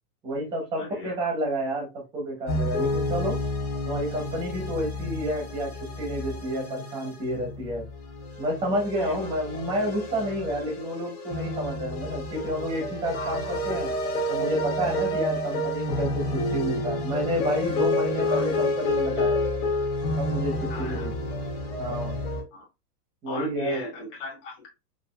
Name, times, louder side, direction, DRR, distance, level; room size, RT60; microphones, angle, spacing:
voice 1, 0.2-1.9 2.1-3.4 3.9-7.8 8.4-13.9 14.3-19.4 20.2-21.1 21.8-22.2 23.2-23.8, equal, 10° right, 1 dB, 0.8 m, -30 dB
voice 2, 0.8-1.3 9.0-9.3 13.1-13.6 14.8-15.1 18.2-18.5 20.7-21.1 22.5-22.7 23.3-24.7, left 1 dB, 35° left, -2 dB, 2.0 m, -36 dB
sound 1, 2.5-22.4, left 1 dB, 65° left, 1.8 m, -29 dB
5.2 x 2.5 x 2.3 m, 0.25 s
supercardioid pair, 165°, 47 cm